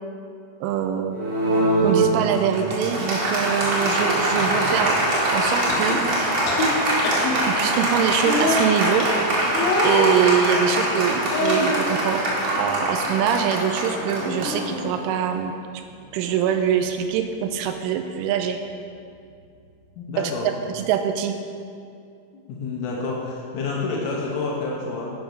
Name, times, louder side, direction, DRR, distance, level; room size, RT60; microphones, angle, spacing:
voice 1, 0.6-1.5 1.8-6.0 7.5-9.1 9.8-12.3 12.6-15.5 16.1-18.6 20.7-21.4, right 8 dB, 85° right, 6 dB, 3.0 m, -24 dB
Applause, 1.1-15.2, right 1 dB, 55° right, 1.3 m, -23 dB
sound 1, 3.3-20.8, equal, 25° right, 3.0 m, -41 dB
sound 2, 5.7-6.0 6.4-6.7 7.0-7.3 8.2-8.6 9.5-10.2 11.3-11.9 12.4-13.2 13.5-13.8 14.2-15.0 16.2-16.4, left 2 dB, 60° left, 2.8 m, -26 dB
voice 2, 20.0-20.5 22.3-25.1, left 3 dB, 80° left, -3 dB, 3.9 m, -29 dB
10.5 x 10.0 x 5.3 m, 2.4 s
omnidirectional pair, 5.8 m